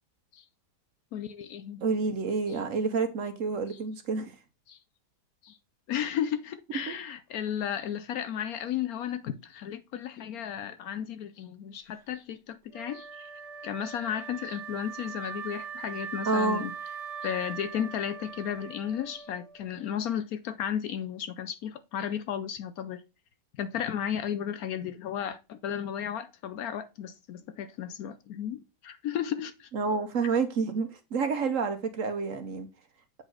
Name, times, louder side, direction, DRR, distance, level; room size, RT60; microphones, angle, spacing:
voice 1, 1.1-1.8 2.5-2.6 4.7-4.8 5.4-5.6 5.9-13.3 13.6-16.7 17.2-23.0 23.6-29.7, left 9 dB, 70° left, 1.0 m, -34 dB
voice 2, 1.8-4.3 6.9-7.0 16.3-16.6 29.7-32.7, right 4 dB, 55° right, 1.1 m, -29 dB
Wind instrument woodwind instrument, 12.7-19.7, right 6 dB, 80° right, 1.7 m, -41 dB
7.9 x 4.1 x 4.7 m
omnidirectional pair, 1.8 m